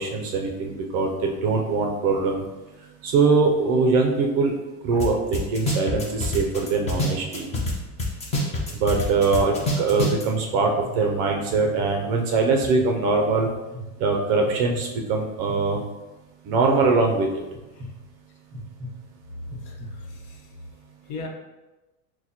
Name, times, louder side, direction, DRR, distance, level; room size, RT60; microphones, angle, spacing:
voice 1, 0.0-2.4 3.0-4.5 4.8-7.5 8.7-13.5 14.0-15.8 16.4-17.3, right 4 dB, 40° right, 2 dB, 0.5 m, -22 dB
sound 1, 5.0-5.1 5.3-7.7 8.0-10.2, left 1 dB, 15° left, 0.5 m, -25 dB
sound 2, 9.5-10.0 10.5-11.0 11.5-11.9 12.4-12.9 13.4-13.9 14.4-14.8 15.5-15.9 16.5-16.9 17.5-17.9 18.5-18.9 19.5-19.9, equal, 10° right, 1.1 m, -38 dB
voice 2, 19.6-20.4 21.1-21.3, left 3 dB, 60° left, 1 dB, 1.0 m, -37 dB
6.1 x 2.2 x 2.9 m, 1.1 s
supercardioid pair, 140°, 46 cm